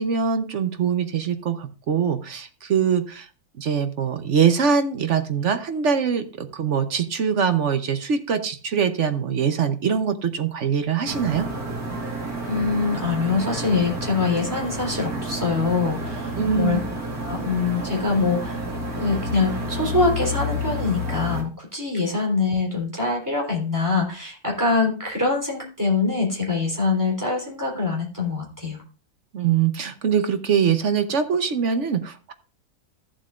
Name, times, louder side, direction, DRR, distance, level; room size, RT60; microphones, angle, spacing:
voice 1, 0.0-3.3 3.6-11.5 16.3-16.8 29.3-32.3, right 7 dB, 55° right, 8 dB, 1.1 m, -23 dB
sound 1, 11.1-21.4, equal, 75° right, 2.3 m, -30 dB
voice 2, 12.5-16.8 17.2-18.6 19.0-28.8, left 4 dB, 10° right, -2 dB, 3.6 m, -24 dB
14.0 x 7.5 x 2.5 m, 0.34 s
omnidirectional pair, 1.6 m